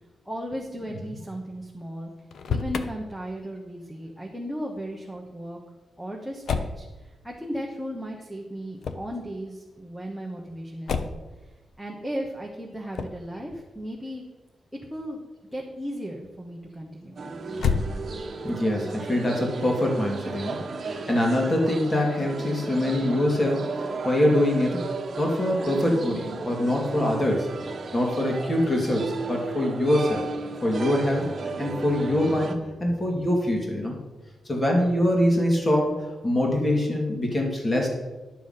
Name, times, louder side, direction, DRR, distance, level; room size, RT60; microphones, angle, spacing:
voice 1, 0.2-2.1 2.5-5.6 6.0-11.2 11.8-14.2 14.7-15.2 15.5-17.2 32.9-33.0, equal, ahead, 0 dB, 1.2 m, -36 dB
Motor vehicle (road), 2.2-2.9 6.4-6.8 8.8-9.2 10.9-11.3 12.9-13.3 17.5-18.4, left 5 dB, 65° left, 0.8 m, -28 dB
sound 1, 17.2-32.6, right 3 dB, 45° right, 1.3 m, -34 dB
voice 2, 18.4-24.8 25.2-27.5 27.9-30.2 30.6-32.5 32.8-33.9 34.5-36.0 36.2-37.9, left 1 dB, 25° left, 0 dB, 2.5 m, -24 dB
11.5 x 7.2 x 5.8 m, 1.2 s
wide cardioid pair, 140°, 0 cm